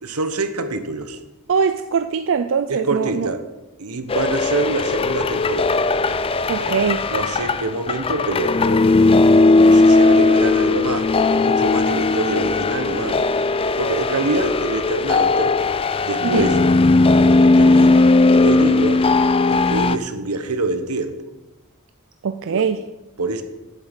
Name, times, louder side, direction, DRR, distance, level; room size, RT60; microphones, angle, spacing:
voice 1, 0.0-1.2 2.7-3.4 3.8-5.8 6.6-8.9 9.5-13.3 13.8-15.6 16.0-16.6 17.2-18.1 18.3-19.1 19.5-21.2 22.5-22.6 23.2-23.4, right 3 dB, 80° right, 8 dB, 1.2 m, -26 dB
voice 2, 1.5-3.3 6.5-7.1 16.2-16.5 22.2-22.9, right 6 dB, 60° right, 9 dB, 0.5 m, -22 dB
sound 1, 4.1-20.0, left 3 dB, 25° left, 0.4 m, -17 dB
9.2 x 7.3 x 8.2 m, 1.1 s
head